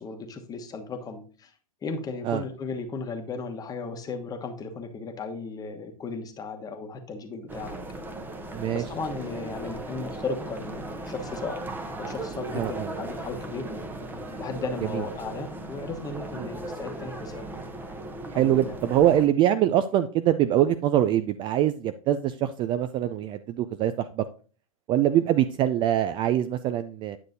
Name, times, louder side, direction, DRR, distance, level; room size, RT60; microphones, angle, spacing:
voice 1, 0.0-1.5 1.8-7.8 8.7-11.6 12.0-13.7 14.4-17.5 18.3-18.8, left 4 dB, 20° left, 5 dB, 1.1 m, -35 dB
sound 1, 7.5-19.3, right 2 dB, 10° right, 0.8 m, -37 dB
voice 2, 8.5-8.8 12.5-12.9 14.9-15.0 16.4-16.5 18.3-24.2 24.9-27.2, right 11 dB, 25° right, 12 dB, 0.3 m, -24 dB
9.7 x 6.5 x 2.7 m, 0.40 s
hypercardioid pair, 110°, 18 cm